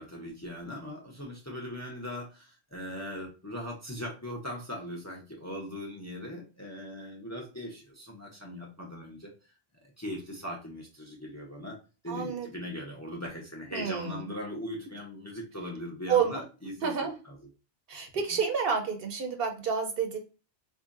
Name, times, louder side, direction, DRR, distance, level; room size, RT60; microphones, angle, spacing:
voice 1, 0.0-9.3 9.8-11.8 12.0-16.9, equal, 20° left, -2 dB, 0.6 m, -39 dB
voice 2, 12.1-12.5 13.7-14.2 16.1-16.4 16.8-17.1 17.9-20.2, right 6 dB, 65° right, 4 dB, 0.9 m, -29 dB
4.2 x 2.6 x 2.3 m, 0.33 s
omnidirectional pair, 1.1 m